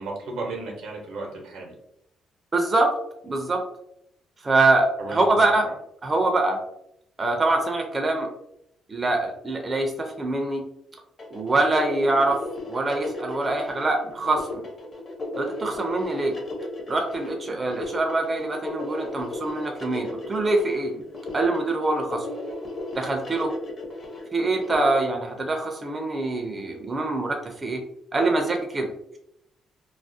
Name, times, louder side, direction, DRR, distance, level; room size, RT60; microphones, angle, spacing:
voice 1, 0.0-1.7 5.0-5.6, right 3 dB, 85° right, 0 dB, 0.7 m, -34 dB
voice 2, 2.5-2.9 3.2-3.6 4.4-5.7 6.0-6.6 7.2-8.3 8.9-10.6 11.3-12.4 12.7-14.7 15.4-16.4 16.9-20.9 21.3-22.3 22.9-23.5 24.3-27.8 28.1-28.9, right 2 dB, 30° right, 2 dB, 0.4 m, -24 dB
sound 1, 11.2-24.9, left 2 dB, 45° left, 0.7 m, -35 dB
2.4 x 2.0 x 2.6 m, 0.78 s
cardioid pair, 90°, 0 cm